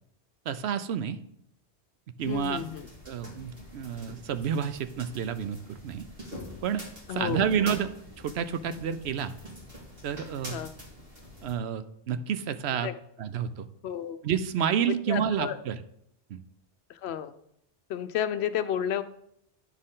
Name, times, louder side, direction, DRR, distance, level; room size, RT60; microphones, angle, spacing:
voice 1, 0.5-1.2 2.2-2.6 3.1-6.1 6.6-7.9 8.2-9.4 10.0-10.6 11.4-12.9 13.2-13.7 14.2-15.8 16.3-16.4, right 8 dB, 75° right, 12 dB, 0.8 m, -30 dB
sound 1, 2.2-11.5, equal, 55° right, 2.2 m, -45 dB
voice 2, 2.3-2.9 7.1-7.7 10.5-10.7 12.8-12.9 13.8-14.2 14.9-15.6 16.9-17.3 17.9-19.0, left 9 dB, 70° left, 12 dB, 0.8 m, -32 dB
9.5 x 6.5 x 3.7 m, 0.72 s
omnidirectional pair, 1.2 m